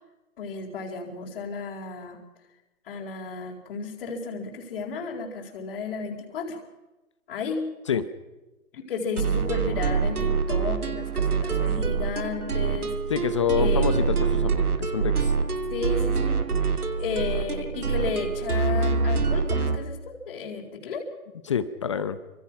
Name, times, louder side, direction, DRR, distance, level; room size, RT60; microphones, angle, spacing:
voice 1, 0.4-2.2 2.9-6.6 7.3-7.6 8.7-13.0 13.5-14.0 15.7-21.1, left 5 dB, 40° left, -4 dB, 4.4 m, -33 dB
sound 1, 9.2-19.8, right 5 dB, 85° right, 3.0 m, -25 dB
voice 2, 13.1-15.3 21.5-22.2, left 7 dB, 20° left, 13 dB, 0.8 m, -27 dB
27.5 x 26.5 x 5.9 m, 1.1 s
hypercardioid pair, 160°, 44 cm